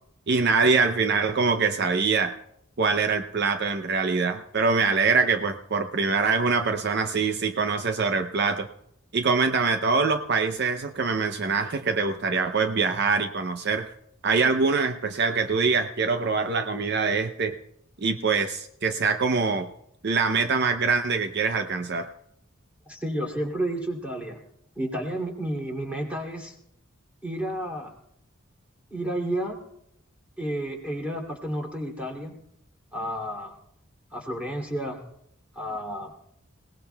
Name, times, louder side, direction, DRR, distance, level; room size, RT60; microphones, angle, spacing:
voice 1, 0.3-2.3 2.8-8.7 9.1-13.9 14.2-17.5 18.0-19.7 20.0-22.1, right 4 dB, 55° right, 7 dB, 0.6 m, -24 dB
voice 2, 22.9-24.4 24.7-26.5 27.2-27.9 28.9-29.6 30.4-32.4 32.9-33.5 34.1-35.0 35.5-36.1, right 1 dB, 5° right, 0 dB, 2.7 m, -31 dB
27.5 x 18.5 x 2.3 m, 0.77 s
head